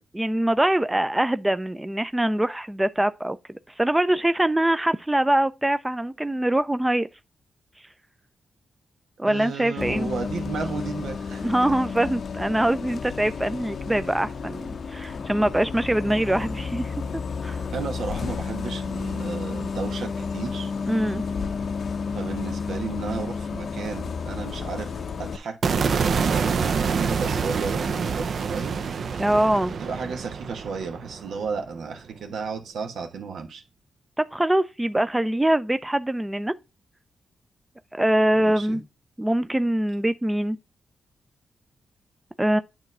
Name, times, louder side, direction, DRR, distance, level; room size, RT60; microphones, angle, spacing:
voice 1, 0.0-7.1 9.2-10.1 11.4-16.9 17.4-17.6 20.9-21.2 29.2-29.7 34.2-36.5 37.9-38.8 39.2-40.6 42.4-42.6, right 1 dB, 10° right, 0.4 m, -23 dB
voice 2, 9.2-11.4 17.7-20.7 22.1-28.8 29.8-33.6 38.3-38.8, right 5 dB, 85° right, 1.2 m, -33 dB
Bus, 9.8-25.4, left 5 dB, 60° left, 0.5 m, -31 dB
sound 1, 25.6-31.9, right 5 dB, 60° right, 0.6 m, -26 dB
8.9 x 3.1 x 5.4 m
cardioid pair, 85°, 0 cm